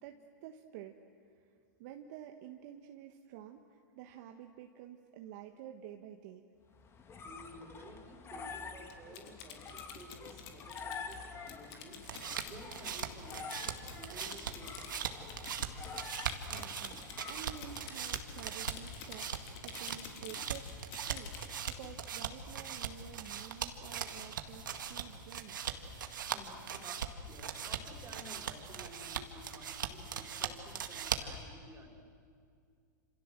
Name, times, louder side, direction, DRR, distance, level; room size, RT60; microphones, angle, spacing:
voice 1, 0.0-1.0 1.4-1.5 1.8-6.5 16.5-19.3 19.6-20.7 21.1-25.6, right 10 dB, 55° right, 4 dB, 1.5 m, -50 dB
sound 1, 6.7-17.9, left 5 dB, 25° left, 2.3 m, -48 dB
voice 2, 7.2-12.0 12.4-15.5 26.3-32.1, right 1 dB, 25° right, 3 dB, 4.5 m, -53 dB
Typing, 8.9-21.9, left 8 dB, 50° left, 3.3 m, -50 dB
sound 2, 11.8-31.4, right 7 dB, 80° right, 2.0 m, -41 dB
28.0 x 27.0 x 7.6 m, 2.2 s
hypercardioid pair, 115°, 10 cm